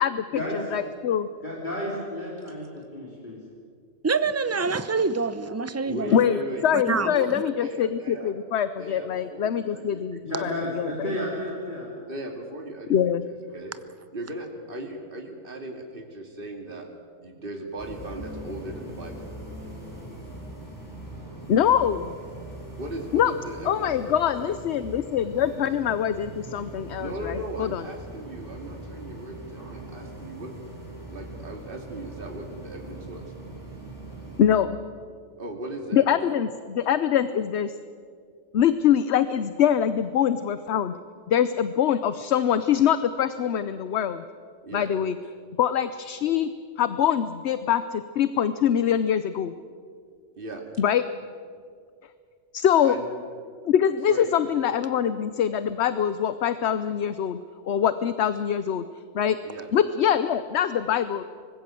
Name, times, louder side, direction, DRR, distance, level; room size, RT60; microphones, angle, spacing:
voice 1, 0.7-1.3 6.1-11.1 12.9-13.3 21.5-22.1 23.1-23.3 23.7-27.8 34.4-34.8 35.9-37.7 38.5-40.9 41.3-44.2 44.7-45.2 45.6-46.5 46.8-49.5 50.8-51.0 52.5-53.0 53.6-57.4 57.7-58.9 59.1-59.4 59.7-61.2, left 9 dB, 65° left, 12 dB, 1.0 m, -24 dB
voice 2, 1.4-3.4 5.9-6.2 10.2-11.9, left 1 dB, 40° left, -5 dB, 4.2 m, -32 dB
voice 3, 4.0-6.1 6.7-7.1, right 4 dB, 15° right, 13 dB, 0.6 m, -26 dB
voice 4, 5.9-6.6 7.0-8.3 8.8-10.5 12.1-13.0 13.2-13.7 14.1-16.8 17.2-19.3 22.8-24.2 27.0-30.5 31.1-33.2 35.4-36.5 44.6-44.9 50.4-50.6 52.8-53.1 54.1-54.3 59.4-59.7, right 1 dB, 45° right, 2 dB, 2.8 m, -37 dB
sound 1, 17.8-34.5, right 1 dB, 15° left, 8.0 m, -41 dB
24.0 x 20.5 x 7.7 m, 2.2 s
omnidirectional pair, 1.3 m